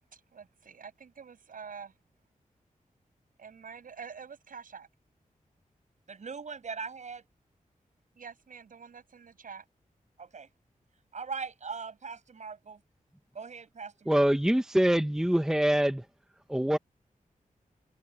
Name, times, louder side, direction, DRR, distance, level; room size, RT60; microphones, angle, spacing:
voice 1, 0.1-1.9 3.4-4.9 8.2-9.6, right 6 dB, 80° right, 7.6 m, -47 dB
voice 2, 6.1-7.2 10.2-10.5 11.1-12.8 13.3-14.3, right 5 dB, 60° right, 6.7 m, -40 dB
voice 3, 14.1-16.0 16.5-16.8, right 1 dB, 5° right, 0.9 m, -24 dB
wide cardioid pair, 165°, 14 cm